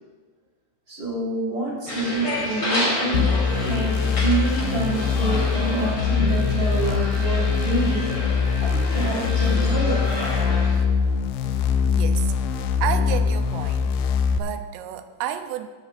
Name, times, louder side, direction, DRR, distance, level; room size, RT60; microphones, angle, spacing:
voice 1, 0.9-3.3 3.6-3.9 4.2-8.1 8.6-10.6, right 2 dB, 20° right, -4 dB, 3.6 m, -27 dB
sound 1, 1.9-10.7, left 1 dB, 30° left, 3.5 m, -30 dB
sound 2, 3.1-14.4, left 6 dB, 80° left, 2.3 m, -22 dB
voice 2, 11.9-13.9 14.3-15.7, right 11 dB, 85° right, 8 dB, 2.7 m, -31 dB
16.0 x 12.5 x 2.5 m, 1.4 s
omnidirectional pair, 4.9 m